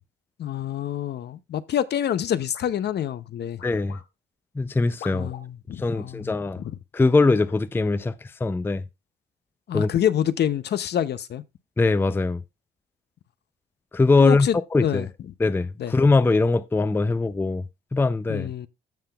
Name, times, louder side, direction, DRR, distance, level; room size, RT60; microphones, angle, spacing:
voice 1, 0.4-3.6 5.1-6.8 9.7-11.4 14.2-15.1 15.8-15.9 18.3-18.7, left 10 dB, 55° left, 0.6 m, -27 dB
sound 1, 2.5-2.8 3.6-4.1 5.0-5.5 6.6-6.7 7.5-7.7, left 7 dB, 85° left, 1.4 m, -44 dB
voice 2, 3.6-4.0 4.6-5.3 5.8-6.6 6.9-8.8 9.7-9.9 11.8-12.4 13.9-15.1 15.4-17.6 17.9-18.5, left 3 dB, 10° left, 0.4 m, -21 dB
14.5 x 5.7 x 2.3 m
cardioid pair, 90°, 20 cm